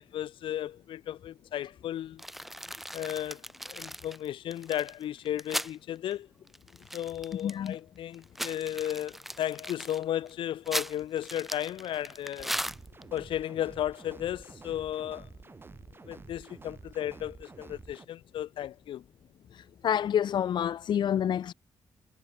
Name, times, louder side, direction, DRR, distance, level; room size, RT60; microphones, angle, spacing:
voice 1, 0.0-2.2 2.9-6.3 6.9-12.5 13.1-15.3 16.1-19.0, left 11 dB, 80° left, 2.9 m, -34 dB
sound 1, 2.2-5.8 6.1-6.2 6.5-7.7 8.1-13.2, equal, ahead, 4.2 m, -38 dB
voice 2, 7.4-7.8 19.5-21.5, left 9 dB, 60° left, 1.0 m, -28 dB
sound 2, 12.4-18.1, right 3 dB, 25° right, 3.8 m, -49 dB
cardioid pair, 105°, 9 cm